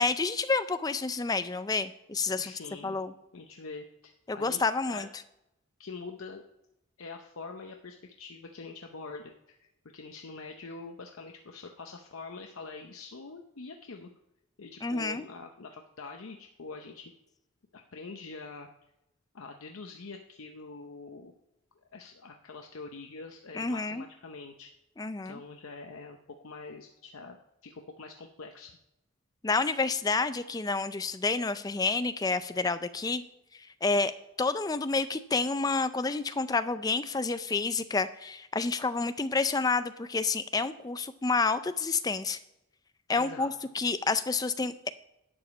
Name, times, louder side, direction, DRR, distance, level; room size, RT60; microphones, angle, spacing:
voice 1, 0.0-2.5 2.8-3.1 4.3-5.1 14.8-15.2 23.5-24.0 25.0-25.4 29.4-33.2 33.5-34.1 34.4-42.4 43.1-44.9, left 4 dB, 20° left, 12 dB, 0.4 m, -29 dB
voice 2, 2.4-3.0 3.3-4.6 4.9-5.1 5.8-6.4 7.0-14.1 14.6-17.1 17.7-18.7 19.3-21.3 21.9-24.7 25.2-26.2 26.4-28.7 43.2-43.5, left 3 dB, 85° left, 4 dB, 0.7 m, -44 dB
11.0 x 5.0 x 7.0 m, 0.90 s
head